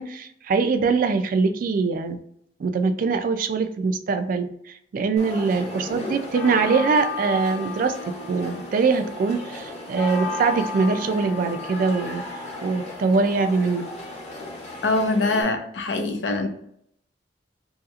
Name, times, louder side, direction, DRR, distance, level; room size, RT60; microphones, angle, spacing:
voice 1, 0.0-2.2 2.6-4.5 4.9-12.2 12.6-13.9, right 4 dB, 50° right, 9 dB, 0.3 m, -23 dB
sound 1, 5.2-15.4, left 3 dB, 40° left, 0.8 m, -34 dB
voice 2, 14.8-16.5, left 2 dB, 80° left, 4 dB, 0.6 m, -23 dB
2.8 x 2.7 x 2.4 m, 0.70 s
head